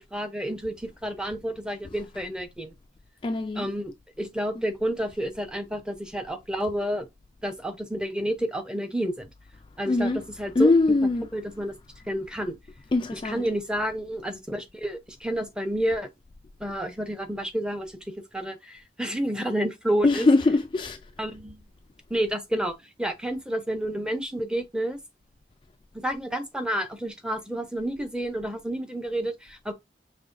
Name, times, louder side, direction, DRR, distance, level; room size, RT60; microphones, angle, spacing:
voice 1, 0.0-2.7 3.6-3.9 4.2-7.1 7.4-9.3 9.8-10.7 11.3-11.8 12.1-12.6 13.1-16.1 16.6-20.3 21.2-21.6 22.1-25.0 25.9-29.7, right 1 dB, 5° right, 0.7 m, -30 dB
voice 2, 3.2-3.7 9.9-10.2 10.6-11.3 12.9-13.4 20.0-21.0, left 3 dB, 30° left, 0.3 m, -22 dB
5.3 x 3.2 x 2.6 m
head